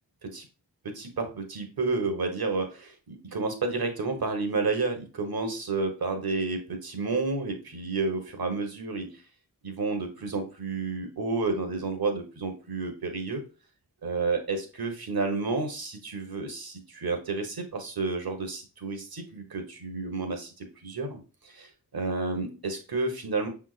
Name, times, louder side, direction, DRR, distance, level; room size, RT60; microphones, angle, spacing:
voice 1, 0.8-9.1 9.6-13.4 14.0-23.5, right 3 dB, 65° right, 5 dB, 1.4 m, -31 dB
5.9 x 3.6 x 2.5 m, 0.34 s
cardioid pair, 40°, 39 cm